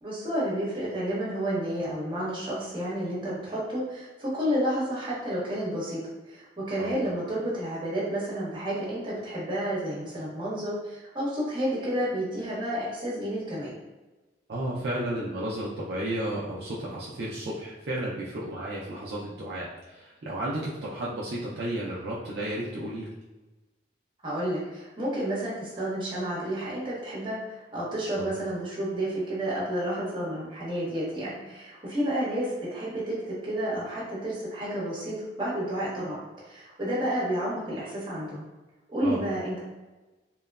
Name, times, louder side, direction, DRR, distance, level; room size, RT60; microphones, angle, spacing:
voice 1, 0.0-6.0 6.3-13.7 24.2-36.2 36.4-38.4 38.9-39.6, right 1 dB, 25° right, -8 dB, 1.0 m, -30 dB
voice 2, 14.5-23.1 28.1-28.3 39.0-39.2, right 1 dB, 60° right, -6 dB, 0.4 m, -33 dB
3.0 x 2.1 x 2.3 m, 1.1 s
head